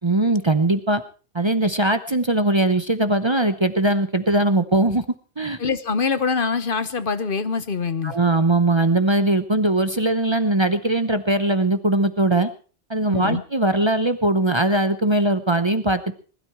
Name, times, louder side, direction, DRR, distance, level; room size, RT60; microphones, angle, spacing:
voice 1, 0.0-1.0 1.3-5.0 5.4-5.6 8.0-12.5 12.9-16.1, right 2 dB, 25° right, 11 dB, 0.8 m, -20 dB
voice 2, 5.6-8.1 13.1-13.4, left 5 dB, 55° left, 13 dB, 1.0 m, -24 dB
20.5 x 12.5 x 4.6 m, 0.38 s
omnidirectional pair, 1.2 m